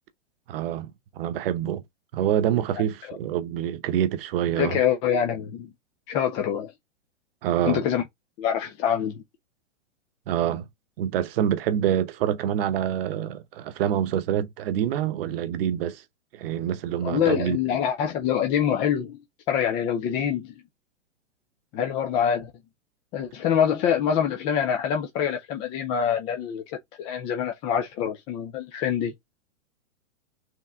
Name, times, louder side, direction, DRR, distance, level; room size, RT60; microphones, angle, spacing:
voice 1, 0.5-1.8 2.1-4.8 7.4-7.8 10.3-10.7 11.0-16.0 16.3-17.6, right 10 dB, 50° right, 0.9 m, -26 dB
voice 2, 4.6-5.7 6.1-6.7 7.6-8.0 8.4-9.2 17.0-19.2 19.5-20.5 21.7-22.5 23.1-29.1, left 8 dB, 15° left, 0.4 m, -25 dB
4.7 x 3.1 x 3.6 m
hypercardioid pair, 125°, 38 cm